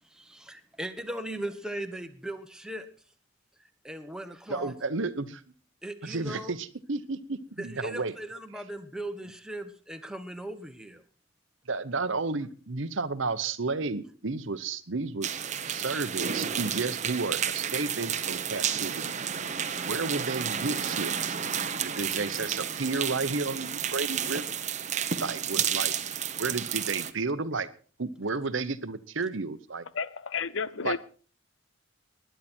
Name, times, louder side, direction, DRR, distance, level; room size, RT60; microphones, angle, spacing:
voice 1, 0.0-2.9 3.6-4.7 5.8-6.6 7.6-11.0, right 1 dB, 5° right, 1.2 m, -38 dB
voice 2, 4.5-5.4 6.0-8.1 11.7-15.4 15.7-19.1 19.8-21.4 21.7-24.5 25.2-26.0 26.4-27.7 28.0-29.9 30.8-31.0, right 3 dB, 60° right, 0.9 m, -32 dB
sound 1, 15.2-27.1, right 8 dB, 35° right, 0.9 m, -31 dB
voice 3, 29.9-31.0, left 5 dB, 60° left, 0.6 m, -31 dB
20.5 x 10.5 x 4.4 m
head